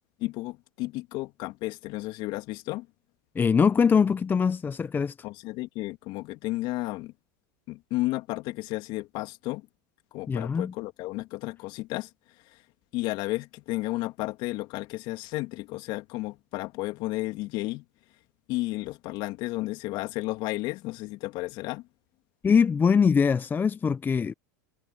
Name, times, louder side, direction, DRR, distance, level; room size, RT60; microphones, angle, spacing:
voice 1, 0.2-2.9 5.2-7.1 7.7-9.7 10.1-12.1 12.9-17.8 18.5-21.8, left 19 dB, 55° left, 2.7 m, -33 dB
voice 2, 3.3-5.1 10.3-10.7 22.4-24.3, left 6 dB, 20° left, 0.7 m, -22 dB
hypercardioid pair, 100°, 10 cm